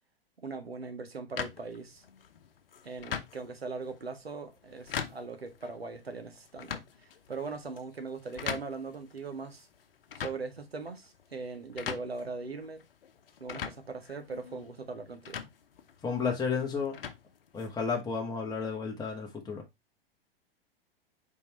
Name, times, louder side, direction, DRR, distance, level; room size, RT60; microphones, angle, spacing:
voice 1, 0.4-2.0 2.8-9.7 10.2-12.9 13.4-15.5, right 4 dB, 85° right, 1.7 m, -40 dB
sound 1, 1.4-18.0, left 7 dB, 70° left, 1.0 m, -43 dB
voice 2, 16.0-17.0 17.5-19.6, left 5 dB, 15° left, 1.7 m, -32 dB
5.4 x 4.7 x 4.3 m
figure-of-eight pair, 100°, 30 cm